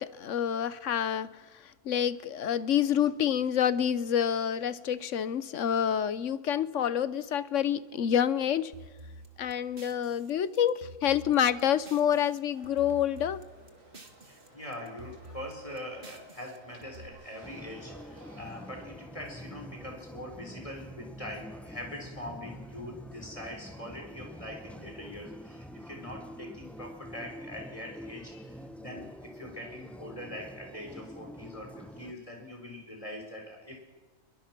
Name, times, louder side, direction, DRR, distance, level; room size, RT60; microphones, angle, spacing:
voice 1, 0.0-1.4 1.8-8.7 9.4-13.4, left 9 dB, 70° left, 1.1 m, -28 dB
sound 1, 8.7-12.4 12.6-14.5 14.7-17.1, right 1 dB, 40° right, 2.0 m, -50 dB
sound 2, 12.5-18.9, right 1 dB, 75° right, 5.4 m, -56 dB
voice 2, 14.2-33.8, left 1 dB, 25° left, 4.7 m, -43 dB
sound 3, 17.4-32.1, equal, ahead, 0.9 m, -46 dB
22.5 x 22.5 x 6.1 m
omnidirectional pair, 1.4 m